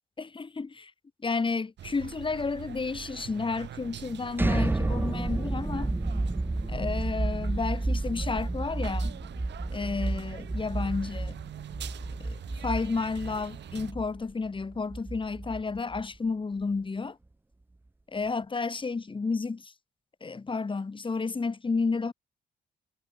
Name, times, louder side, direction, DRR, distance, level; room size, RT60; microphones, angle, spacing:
voice 1, 0.2-0.9 1.2-5.9 6.7-9.1 9.7-11.4 12.2-17.2 18.1-19.7 20.2-22.1, left 4 dB, 25° left, 1.5 m, -31 dB
sound 1, 1.8-13.9, right 11 dB, 65° right, 2.3 m, -44 dB
sound 2, 4.3-16.2, right 2 dB, 10° right, 0.6 m, -31 dB
supercardioid pair, 55°, 19 cm